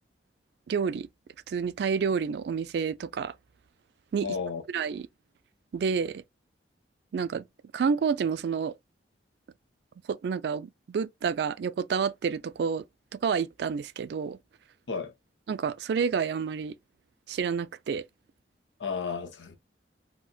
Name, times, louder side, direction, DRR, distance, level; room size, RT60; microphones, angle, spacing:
voice 1, 0.7-1.1 1.5-3.3 4.1-4.3 4.7-5.1 5.7-6.2 7.1-7.4 7.7-8.7 10.1-12.8 13.1-14.4 15.5-16.8 17.3-18.0, right 6 dB, 65° right, 0.3 m, -29 dB
voice 2, 4.2-4.6 14.9-15.1 18.8-19.6, left 5 dB, 80° left, 0.8 m, -33 dB
4.0 x 2.1 x 2.3 m
head